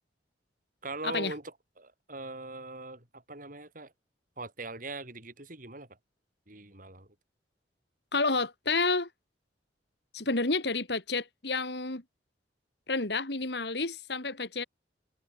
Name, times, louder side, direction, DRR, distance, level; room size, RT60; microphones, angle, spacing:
voice 1, 0.8-3.9 4.4-5.9 6.5-7.1, right 2 dB, 50° right, 6.2 m, -41 dB
voice 2, 8.1-9.1 10.1-12.0 12.9-14.6, left 3 dB, 65° left, 2.8 m, -30 dB
head